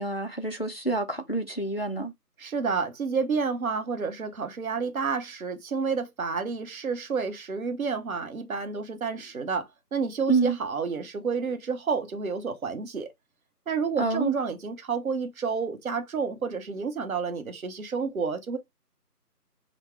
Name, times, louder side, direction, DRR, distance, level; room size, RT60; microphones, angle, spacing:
voice 1, 0.0-2.1 10.3-10.6 14.0-14.3, right 3 dB, 40° left, 0.5 m, -27 dB
voice 2, 2.4-13.1 13.7-18.6, right 5 dB, 55° right, 0.9 m, -30 dB
5.9 x 2.2 x 3.1 m
figure-of-eight pair, 165°, 49 cm